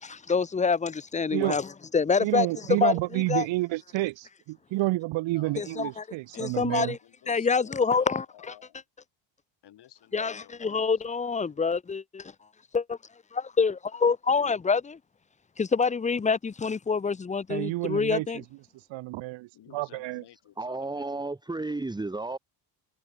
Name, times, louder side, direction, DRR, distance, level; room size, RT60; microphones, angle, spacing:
voice 1, 0.0-3.5 5.6-6.0 6.4-7.0 7.3-8.2 10.1-12.3 12.7-13.0 13.3-15.0 15.6-18.4, left 5 dB, 15° left, 0.8 m, -26 dB
voice 2, 2.2-6.9 17.5-18.4 18.9-20.2, right 19 dB, 65° right, 1.2 m, -30 dB
voice 3, 5.3-5.9 6.3-8.8 9.6-11.6 19.5-21.2, left 12 dB, 55° left, 6.3 m, -54 dB
voice 4, 20.6-22.4, right 2 dB, 10° right, 1.9 m, -33 dB
cardioid pair, 140°, 49 cm